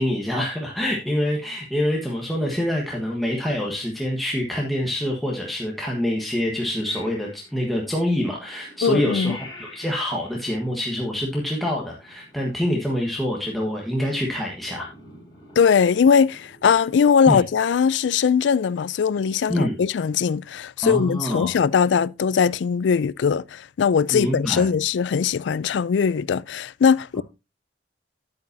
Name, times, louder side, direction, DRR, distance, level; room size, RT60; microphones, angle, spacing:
voice 1, 0.0-14.9 17.3-17.4 19.5-19.8 20.8-21.6 24.1-24.7, equal, ahead, 1.3 m, -26 dB
Purr / Meow, 6.9-16.8, left 2 dB, 25° left, 4.4 m, -48 dB
voice 2, 8.8-9.4 15.6-27.2, left 6 dB, 80° left, 0.4 m, -20 dB
9.7 x 8.9 x 2.7 m
head